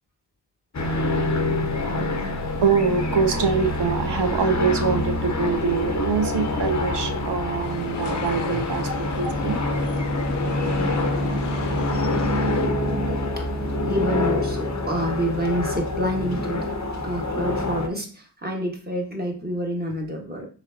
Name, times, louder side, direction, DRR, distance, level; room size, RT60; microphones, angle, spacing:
sound 1, 0.7-17.9, left 1 dB, 40° left, 0.9 m, -26 dB
voice 1, 2.6-9.6, right 5 dB, 70° right, 6 dB, 0.8 m, -24 dB
sound 2, 7.6-12.7, left 6 dB, 70° left, 0.6 m, -35 dB
voice 2, 13.4-16.7 17.0-20.5, equal, 20° right, 0 dB, 1.5 m, -28 dB
5.0 x 3.4 x 2.7 m, 0.39 s
cardioid pair, 45°, 43 cm